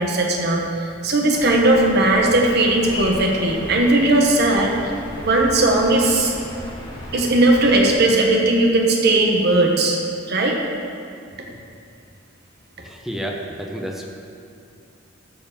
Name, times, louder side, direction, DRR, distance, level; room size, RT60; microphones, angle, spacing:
voice 1, 0.0-6.3 7.1-10.0 10.3-10.6, right 2 dB, 60° right, 0 dB, 1.2 m, -18 dB
sound 1, 1.3-7.9, left 1 dB, 25° left, 1.6 m, -35 dB
voice 2, 12.8-14.1, equal, ahead, 0 dB, 0.7 m, -30 dB
13.0 x 4.7 x 7.3 m, 2.5 s
head